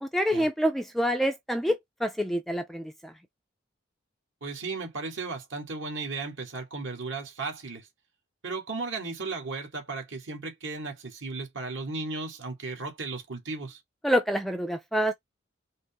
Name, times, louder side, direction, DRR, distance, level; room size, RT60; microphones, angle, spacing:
voice 1, 0.0-3.1 14.0-15.1, equal, ahead, 0.3 m, -27 dB
voice 2, 4.4-7.9 8.4-13.8, right 3 dB, 70° right, 1.8 m, -35 dB
5.2 x 2.0 x 3.4 m
head